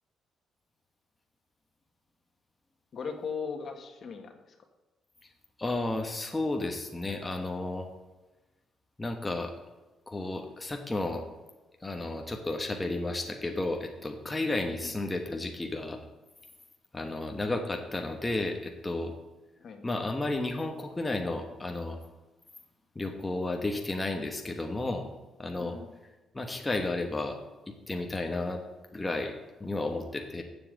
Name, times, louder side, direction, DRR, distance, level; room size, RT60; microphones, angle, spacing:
voice 1, 2.9-4.5 14.8-14.9 19.6-19.8 25.6-25.9, left 5 dB, 55° left, 5 dB, 1.6 m, -38 dB
voice 2, 5.6-7.9 9.0-9.5 10.1-11.2 11.8-16.0 16.9-19.1 19.8-22.0 22.9-25.1 25.4-25.8 26.3-27.4 27.7-28.6 28.9-30.4, left 2 dB, 15° left, 3 dB, 1.2 m, -32 dB
7.4 x 7.0 x 8.2 m, 1.1 s
cardioid pair, 90°, 0 cm